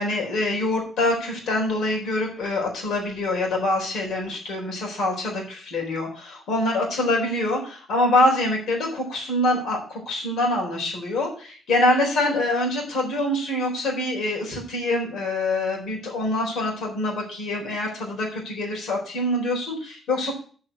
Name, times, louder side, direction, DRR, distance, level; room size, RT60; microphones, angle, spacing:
voice 1, 0.0-20.3, left 1 dB, 65° left, 0 dB, 4.0 m, -25 dB
7.4 x 5.6 x 7.6 m, 0.42 s
cardioid pair, 170°, 0 cm